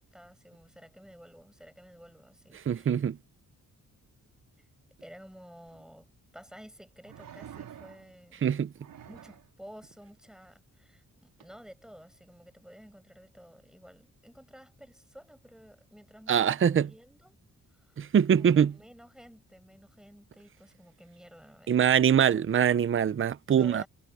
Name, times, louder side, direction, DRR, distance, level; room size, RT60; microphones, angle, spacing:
voice 1, 0.0-3.0 5.0-6.1 6.3-8.5 9.0-17.4 17.8-17.9 18.3-22.4 23.5-23.9, equal, ahead, 8.0 m, -52 dB
voice 2, 2.5-3.2 8.4-8.7 16.3-16.9 18.0-18.7 21.7-23.8, right 8 dB, 40° right, 0.6 m, -23 dB
sound 1, 5.7-5.8 7.0-8.2 8.8-9.5 11.4-11.5, right 9 dB, 90° right, 4.5 m, -48 dB
cardioid pair, 110°, 33 cm